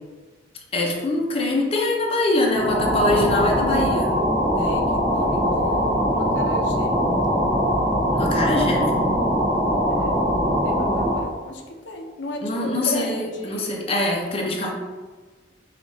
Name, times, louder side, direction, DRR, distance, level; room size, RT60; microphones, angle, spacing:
voice 1, 0.7-4.1 8.1-8.9 12.4-14.7, left 2 dB, 35° left, -1 dB, 0.6 m, -23 dB
sound 1, 2.5-11.3, equal, 15° right, 0.7 m, -22 dB
voice 2, 4.6-7.0 9.9-13.8, left 1 dB, 90° left, 2 dB, 0.6 m, -34 dB
4.8 x 2.4 x 4.0 m, 1.3 s
head